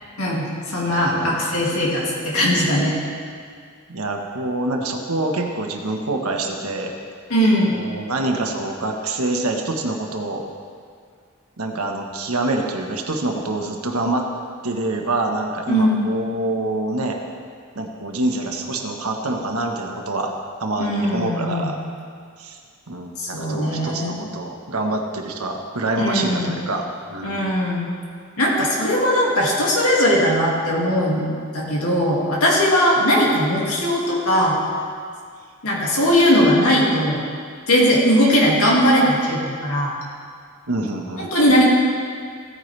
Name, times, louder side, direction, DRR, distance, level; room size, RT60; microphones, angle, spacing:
voice 1, 0.2-3.0 7.3-7.8 15.7-16.0 20.8-21.7 23.2-24.3 26.0-26.5 27.2-27.9 28.4-31.3 31.5-34.6 35.6-37.2 37.7-39.9 41.2-41.6, equal, 85° left, -4 dB, 2.1 m, -19 dB
voice 2, 0.9-1.3 3.9-6.9 7.8-10.4 11.6-14.3 14.6-17.2 17.7-20.3 20.6-21.8 22.4-22.6 22.9-27.4 40.7-41.3, right 2 dB, 90° right, 2 dB, 1.3 m, -26 dB
16.0 x 9.2 x 3.3 m, 2.1 s
head